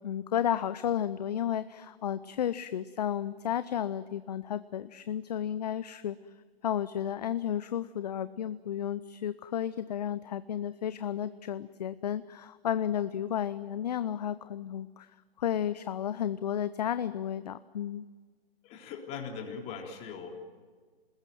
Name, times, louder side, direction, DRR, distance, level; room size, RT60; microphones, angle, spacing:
voice 1, 0.0-6.2 6.6-15.1 15.4-18.0, left 10 dB, 45° left, 14 dB, 0.8 m, -32 dB
voice 2, 18.6-20.3, left 6 dB, 20° left, 2 dB, 3.7 m, -40 dB
27.0 x 21.0 x 9.4 m, 1.5 s
figure-of-eight pair, 135°, 30 cm